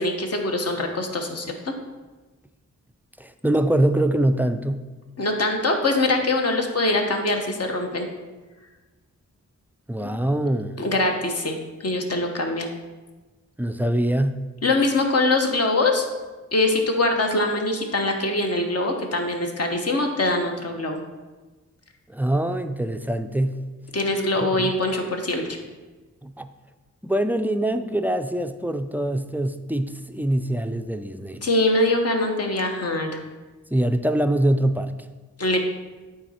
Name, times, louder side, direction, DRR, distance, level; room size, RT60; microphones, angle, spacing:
voice 1, 0.0-1.7 5.2-8.1 10.0-10.1 10.8-12.7 14.6-16.1 16.5-21.0 23.9-25.4 31.4-33.1 35.4-35.6, left 2 dB, 55° left, 3 dB, 1.0 m, -23 dB
voice 2, 3.2-4.8 9.9-10.8 13.6-14.5 22.1-23.6 24.6-24.7 26.2-26.5 27.0-31.4 33.7-34.9, right 1 dB, 5° right, 9 dB, 0.3 m, -23 dB
9.0 x 3.8 x 4.2 m, 1.2 s
wide cardioid pair, 75°, 30 cm